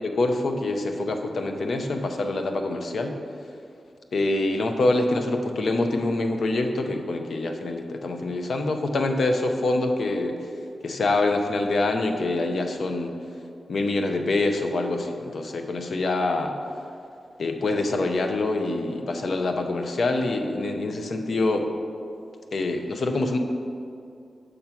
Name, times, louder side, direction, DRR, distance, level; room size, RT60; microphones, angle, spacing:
voice 1, 0.0-3.2 4.1-10.5 10.8-13.1 13.7-16.6 17.4-21.7 22.5-23.4, left 2 dB, 70° left, 5 dB, 0.6 m, -25 dB
6.5 x 4.4 x 5.8 m, 2.4 s
cardioid pair, 55°, 0 cm